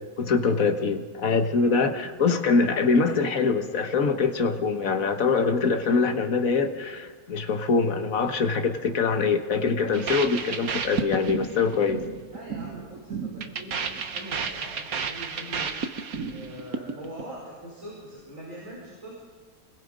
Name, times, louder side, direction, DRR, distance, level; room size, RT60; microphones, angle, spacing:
voice 1, 0.2-12.0, left 4 dB, 75° left, 6 dB, 1.8 m, -24 dB
sound 1, 9.9-17.2, right 6 dB, 90° right, 1.6 m, -32 dB
voice 2, 12.3-15.9 16.3-19.2, right 1 dB, 65° right, -5 dB, 5.8 m, -42 dB
26.0 x 21.0 x 5.2 m, 1.5 s
omnidirectional pair, 1.5 m